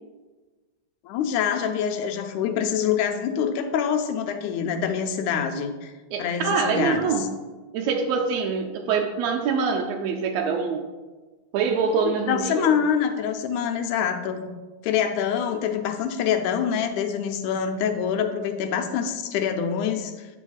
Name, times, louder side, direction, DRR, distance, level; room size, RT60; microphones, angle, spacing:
voice 1, 1.1-5.9 6.2-7.3 12.0-14.5 14.8-20.3, left 8 dB, 85° left, 6 dB, 2.0 m, -25 dB
voice 2, 6.1-7.3 7.7-10.9 11.5-12.7, right 5 dB, 80° right, 3 dB, 1.7 m, -25 dB
9.9 x 6.1 x 2.3 m, 1.3 s
omnidirectional pair, 3.4 m